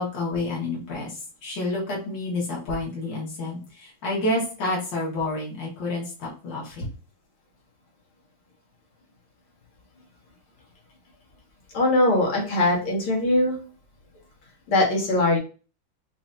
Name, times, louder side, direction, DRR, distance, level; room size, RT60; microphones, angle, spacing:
voice 1, 0.0-6.9, left 2 dB, 60° left, -4 dB, 2.3 m, -29 dB
voice 2, 11.7-13.6 14.7-15.4, left 2 dB, 85° left, -3 dB, 2.6 m, -21 dB
6.0 x 2.8 x 2.6 m, 0.36 s
omnidirectional pair, 2.3 m